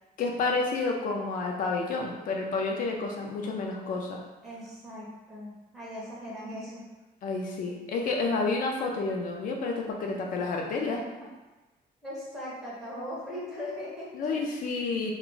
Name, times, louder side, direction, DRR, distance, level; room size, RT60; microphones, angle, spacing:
voice 1, 0.2-4.2 7.2-11.0 14.1-15.1, left 3 dB, 55° left, 1 dB, 0.4 m, -30 dB
voice 2, 4.4-6.9 10.0-10.3 10.7-11.1 12.0-14.5, left 1 dB, ahead, -7 dB, 0.6 m, -40 dB
2.3 x 2.0 x 3.7 m, 1.1 s
cardioid pair, 175°, 17 cm